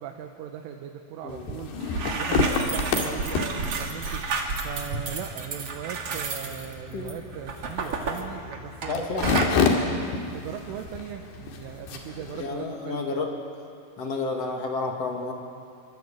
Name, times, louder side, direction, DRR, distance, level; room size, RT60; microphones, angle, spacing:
voice 1, 0.0-9.8 10.3-13.3, right 9 dB, 80° right, 3 dB, 3.7 m, -39 dB
sound 1, 1.3-12.5, left 5 dB, 60° left, 4.0 m, -30 dB
sound 2, 1.5-1.6 1.8-9.0 9.2-9.6, right 4 dB, 45° right, 2.1 m, -31 dB
voice 2, 8.9-9.3 9.7-9.8 12.2-13.3 14.0-15.3, left 3 dB, 45° left, 2 dB, 2.4 m, -31 dB
28.5 x 24.0 x 8.5 m, 2.3 s
omnidirectional pair, 5.6 m